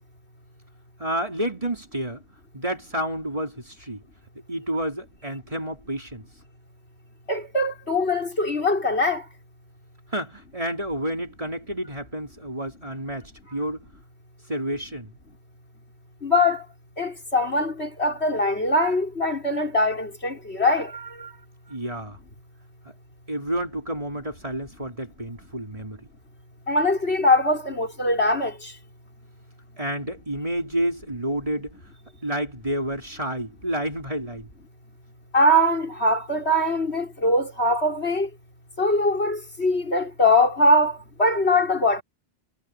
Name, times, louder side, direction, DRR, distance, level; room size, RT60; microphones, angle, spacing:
voice 1, 1.0-2.2 2.5-4.0 4.5-6.2 10.1-13.8 14.5-15.1 21.7-22.2 23.3-26.1 29.8-31.7 32.2-34.5, right 1 dB, 30° right, 4.8 m, -30 dB
voice 2, 7.3-9.2 16.2-16.6 17.0-21.3 26.7-28.7 35.3-38.3 38.8-42.0, left 1 dB, 80° left, 6.0 m, -22 dB
omnidirectional pair, 1.1 m